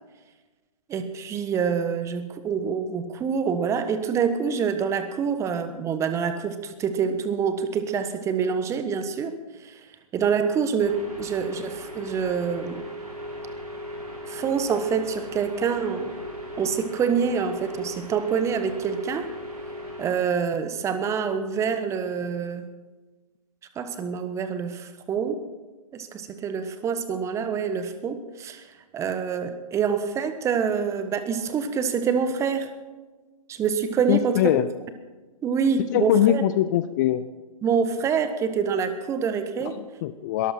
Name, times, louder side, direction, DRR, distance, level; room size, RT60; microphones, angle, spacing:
voice 1, 0.9-9.3 9.6-9.8 10.1-12.9 14.3-16.1 16.6-19.3 20.0-22.7 23.7-25.4 25.9-28.7 28.9-32.7 33.5-34.4 35.4-36.4 37.6-39.8, right 6 dB, 15° right, 10 dB, 1.2 m, -26 dB
sound 1, 10.8-20.1, equal, 90° right, 6.4 m, -37 dB
voice 2, 34.1-34.7 35.9-37.2 39.6-40.5, left 13 dB, 30° left, 13 dB, 0.6 m, -22 dB
21.5 x 14.0 x 4.4 m, 1.3 s
figure-of-eight pair, 125°, 19 cm